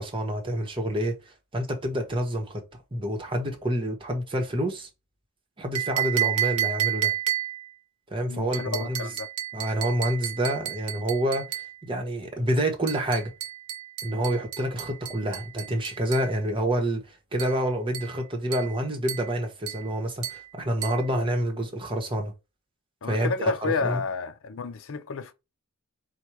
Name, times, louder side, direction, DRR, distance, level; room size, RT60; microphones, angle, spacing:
voice 1, 0.0-4.9 5.6-7.1 8.1-9.1 9.5-13.3 14.0-22.3 23.1-24.0, right 1 dB, 25° right, 1.0 m, -28 dB
sound 1, 5.7-7.7 8.5-11.8 12.9-16.3 17.4-17.6 17.9-18.2 18.5-18.8 19.1-19.3 19.7-19.9 20.2-20.5 20.8-21.1, right 11 dB, 80° right, 0.5 m, -31 dB
voice 2, 8.2-9.3 23.0-25.3, left 4 dB, 60° left, 0.5 m, -30 dB
4.3 x 2.3 x 4.7 m
head